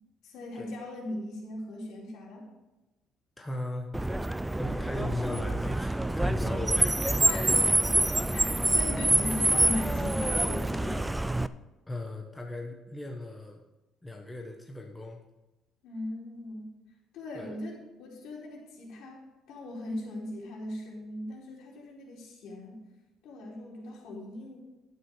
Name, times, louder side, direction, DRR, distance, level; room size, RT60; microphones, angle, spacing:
voice 1, 0.2-2.4 6.9-7.0 7.2-7.6 8.3-11.1 15.8-16.7 17.1-22.8 23.2-24.6, left 1 dB, 65° left, -3 dB, 4.4 m, -39 dB
voice 2, 3.4-3.9 4.5-7.0 11.9-13.6 14.0-15.2 17.3-17.5, left 2 dB, 10° left, 1 dB, 1.0 m, -37 dB
Car, 3.9-11.5, right 1 dB, 5° right, 0.3 m, -26 dB
11.5 x 9.4 x 4.8 m, 1.0 s
cardioid pair, 150°, 0 cm